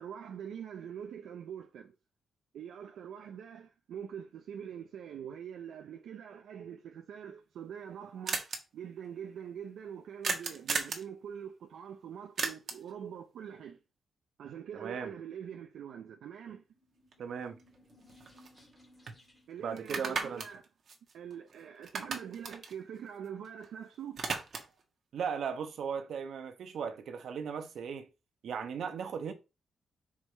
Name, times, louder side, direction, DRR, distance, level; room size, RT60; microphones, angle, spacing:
voice 1, 0.0-1.9 2.5-13.8 14.4-16.6 19.5-20.6 21.1-24.2, right 8 dB, 80° right, 0.7 m, -44 dB
sound 1, 7.3-7.4 7.6-7.7 7.9-8.0 8.3-8.6 10.2-11.1 12.4-12.9 17.1-17.2 17.6-18.8 19.1-19.2 19.8-21.5 21.8-23.7 23.9-24.8, right 4 dB, 50° right, 1.3 m, -36 dB
voice 2, 14.7-15.1 17.2-17.6 19.6-20.4 25.1-28.1 28.4-29.3, right 6 dB, 65° right, 1.1 m, -37 dB
sound 2, 16.7-19.7, left 1 dB, 15° left, 2.3 m, -61 dB
5.6 x 4.9 x 4.1 m
wide cardioid pair, 150°, 0 cm